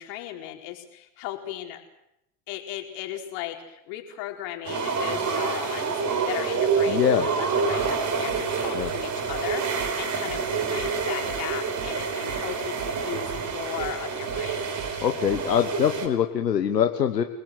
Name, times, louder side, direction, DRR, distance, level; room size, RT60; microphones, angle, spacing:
voice 1, 0.0-1.8 2.5-14.7, left 12 dB, 60° left, 3 dB, 4.6 m, -37 dB
sound 1, 4.6-16.1, right 5 dB, 35° right, 5.2 m, -27 dB
voice 2, 6.9-7.3 8.7-8.9 15.0-17.2, left 9 dB, 85° left, 7 dB, 1.4 m, -23 dB
sound 2, 7.8-15.5, right 8 dB, 55° right, 3.6 m, -42 dB
30.0 x 19.5 x 7.9 m, 0.83 s
figure-of-eight pair, 75°, 48 cm